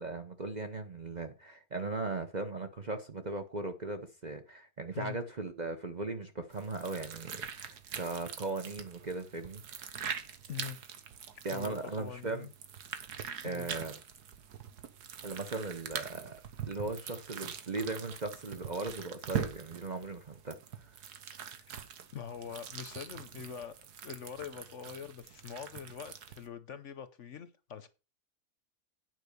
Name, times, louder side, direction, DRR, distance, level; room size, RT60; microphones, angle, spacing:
voice 1, 0.0-10.0 11.4-12.5 13.4-13.9 15.2-16.4 16.7-20.9, right 3 dB, 35° right, 0.8 m, -38 dB
sound 1, 6.5-26.5, right 8 dB, 85° right, 1.6 m, -43 dB
voice 2, 10.5-10.8 11.5-12.5 13.4-13.8 21.7-21.8 22.1-23.7 24.0-27.9, left 7 dB, 55° left, 1.0 m, -44 dB
9.5 x 5.2 x 6.7 m
omnidirectional pair, 1.6 m